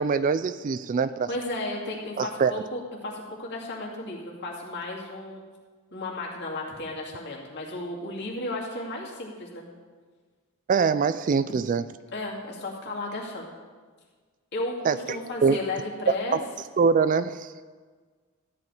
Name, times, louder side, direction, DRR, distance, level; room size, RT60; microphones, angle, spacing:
voice 1, 0.0-1.3 2.2-2.5 10.7-11.8 14.8-15.6 16.1-16.4 16.8-17.5, right 5 dB, 35° right, 14 dB, 0.3 m, -24 dB
voice 2, 1.3-5.4 5.9-9.6 12.1-13.5 14.5-16.4, left 2 dB, 50° left, -3 dB, 2.4 m, -34 dB
13.5 x 5.2 x 9.2 m, 1.5 s
head